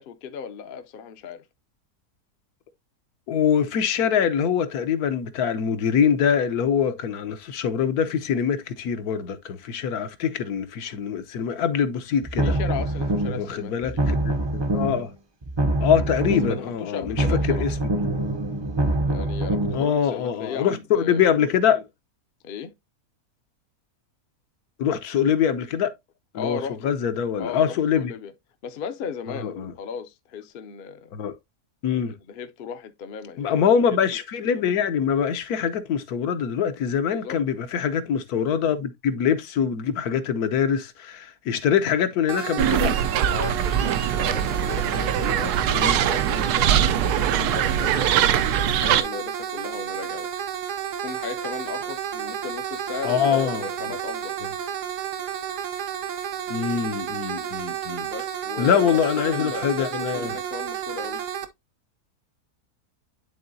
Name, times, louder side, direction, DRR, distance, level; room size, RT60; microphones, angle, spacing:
voice 1, 0.0-1.5 12.4-14.1 16.2-17.7 19.1-21.3 22.4-22.7 26.3-26.9 27.4-28.3 28.6-31.1 32.3-33.5 37.1-37.4 43.3-46.7 47.1-50.3 51.0-54.4 58.0-61.2, left 6 dB, 55° left, 0.6 m, -36 dB
voice 2, 3.3-12.5 13.4-15.1 15.8-17.7 19.7-21.9 24.8-25.9 26.3-28.1 29.3-29.7 31.1-31.3 31.8-32.1 33.4-42.9 45.7-46.0 53.0-53.7 56.5-58.1 58.6-60.4, left 8 dB, 75° left, 1.3 m, -24 dB
sound 1, 12.2-13.5 13.8-15.1 15.4-16.7 17.0-19.8, right 1 dB, 35° right, 0.4 m, -25 dB
sound 2, 42.3-61.5, right 9 dB, 65° right, 1.0 m, -31 dB
sound 3, 42.6-49.0, right 9 dB, 85° right, 1.1 m, -22 dB
10.5 x 3.7 x 2.6 m
omnidirectional pair, 1.6 m